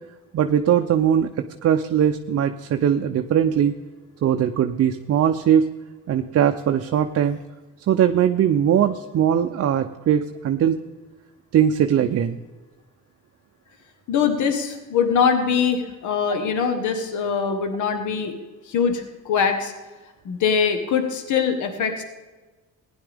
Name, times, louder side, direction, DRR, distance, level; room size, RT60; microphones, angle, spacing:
voice 1, 0.3-1.3 1.6-3.7 4.2-5.7 6.1-7.4 7.9-10.8 11.5-12.4, right 9 dB, 55° right, 6 dB, 0.6 m, -20 dB
voice 2, 14.1-18.4 18.6-19.7 20.2-22.0, left 6 dB, 80° left, 6 dB, 1.3 m, -22 dB
16.0 x 10.5 x 3.5 m, 1.2 s
cardioid pair, 90°, 30 cm